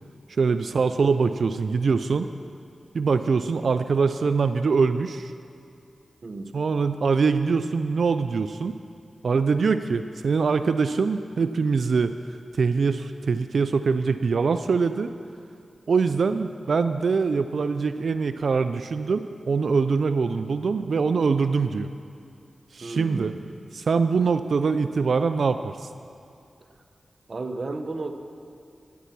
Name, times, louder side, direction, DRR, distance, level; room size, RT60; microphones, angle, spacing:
voice 1, 0.3-2.3 2.9-5.3 6.5-8.7 9.2-12.1 12.5-15.1 15.9-21.9 22.7-23.3 23.7-25.9, right 5 dB, 75° right, 10 dB, 0.3 m, -23 dB
voice 2, 6.2-6.5 16.1-16.4 22.8-23.4 27.3-28.1, right 3 dB, 55° right, 7 dB, 0.9 m, -33 dB
11.5 x 9.4 x 5.9 m, 2.5 s
cardioid pair, 45°, 0 cm